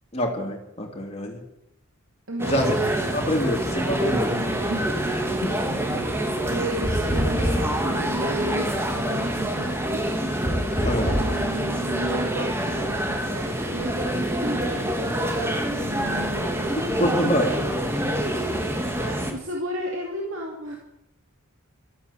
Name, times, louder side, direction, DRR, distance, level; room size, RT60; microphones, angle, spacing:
voice 1, 0.1-1.4 2.4-2.7 3.1-4.3 5.4-5.6 10.8-11.2 17.0-17.5, equal, 25° left, 0 dB, 2.9 m, -25 dB
voice 2, 2.3-2.9 4.1-5.0 5.4-10.2 11.0-17.1 17.4-17.7 19.0-20.8, right 2 dB, 60° right, 0 dB, 2.5 m, -34 dB
sound 1, 2.4-19.3, equal, 10° right, 1.6 m, -26 dB
sound 2, 6.8-7.8 10.4-11.4, equal, 5° left, 3.0 m, -26 dB
13.5 x 11.0 x 8.4 m, 0.81 s
head